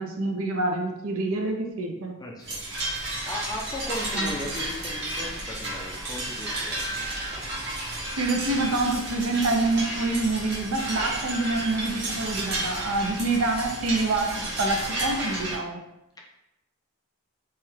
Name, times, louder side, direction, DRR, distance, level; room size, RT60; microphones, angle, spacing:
voice 1, 0.0-2.2 4.1-4.3 8.2-15.8, right 2 dB, 75° right, 2 dB, 0.5 m, -26 dB
voice 2, 2.2-7.1 16.2-16.3, left 1 dB, 20° left, -1 dB, 0.4 m, -37 dB
sound 1, 2.4-15.6, right 1 dB, 50° right, 0.8 m, -32 dB
2.9 x 2.2 x 3.2 m, 0.87 s
head